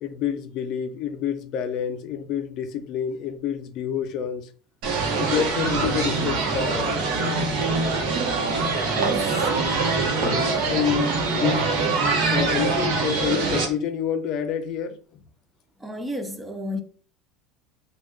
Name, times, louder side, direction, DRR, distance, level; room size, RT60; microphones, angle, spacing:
voice 1, 0.0-4.4 5.1-7.0 10.2-11.7 12.3-15.0, left 8 dB, 50° left, 0.4 m, -28 dB
sound 1, 4.8-13.7, right 3 dB, 60° right, 0.9 m, -23 dB
voice 2, 8.9-9.5 15.8-16.8, equal, 10° right, 0.4 m, -32 dB
3.4 x 2.3 x 3.1 m
supercardioid pair, 140°, 0 cm